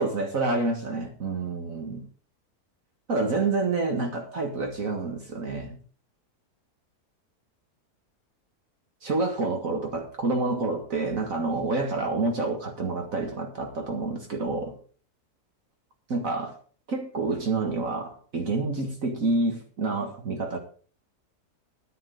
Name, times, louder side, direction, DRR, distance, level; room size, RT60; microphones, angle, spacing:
voice 1, 0.0-2.1 3.1-5.8 9.0-14.8 16.1-16.6 16.9-20.6, right 3 dB, 60° right, 2.0 m, -28 dB
10.5 x 10.0 x 5.2 m
omnidirectional pair, 1.7 m